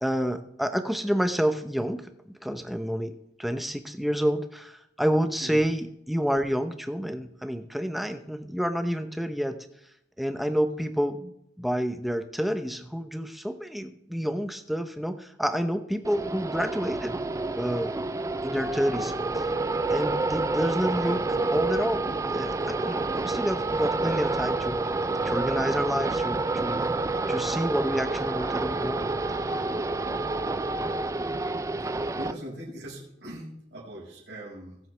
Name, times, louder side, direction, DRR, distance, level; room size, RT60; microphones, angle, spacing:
voice 1, 0.0-2.1 2.4-3.1 3.4-9.6 10.2-17.2 17.5-17.9 18.4-19.5 19.9-21.2 21.5-24.8 25.2-27.0 27.3-29.0, equal, ahead, 7 dB, 0.8 m, -29 dB
sound 1, 16.0-32.3, right 3 dB, 15° right, 0.3 m, -28 dB
voice 2, 32.2-34.8, right 1 dB, 70° right, -5 dB, 5.4 m, -40 dB
21.5 x 7.9 x 3.4 m, 0.78 s
head